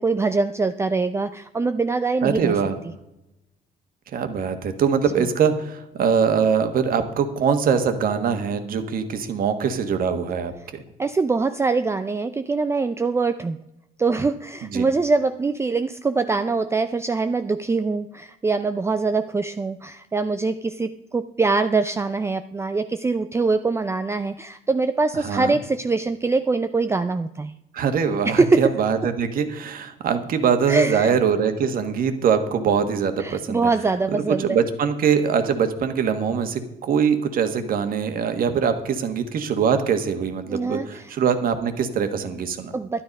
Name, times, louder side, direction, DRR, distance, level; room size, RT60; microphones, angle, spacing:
voice 1, 0.0-2.6 11.0-13.6 14.0-27.5 28.2-28.7 30.7-31.1 33.2-34.6 40.5-41.2 42.7-43.0, right 3 dB, 15° right, 10 dB, 0.4 m, -23 dB
voice 2, 2.2-2.8 4.1-10.8 14.7-14.9 25.1-25.6 27.7-33.7 34.1-42.7, right 7 dB, 60° right, 8 dB, 1.5 m, -23 dB
11.5 x 10.0 x 5.3 m, 0.90 s
cardioid pair, 110°, 17 cm